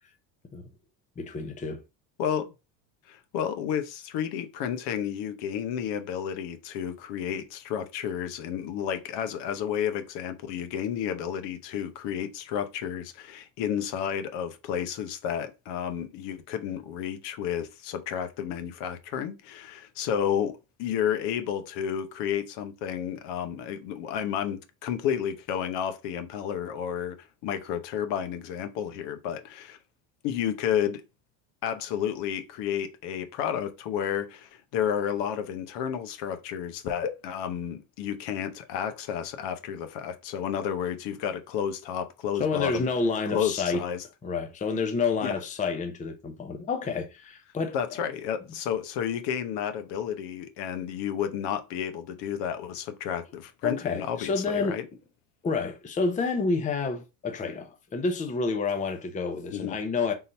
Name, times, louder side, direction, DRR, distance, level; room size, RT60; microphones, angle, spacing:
voice 1, 1.2-1.8 42.4-43.8 44.2-47.8 53.6-54.8 55.4-60.1, left 4 dB, 15° left, 0.7 m, -29 dB
voice 2, 2.2-2.5 3.1-20.5 20.8-27.2 27.4-29.8 30.2-31.0 31.6-42.9 43.3-44.0 45.2-45.3 47.7-54.8 59.5-59.8, left 9 dB, 60° left, 0.9 m, -31 dB
3.8 x 2.7 x 4.2 m
supercardioid pair, 115°, 48 cm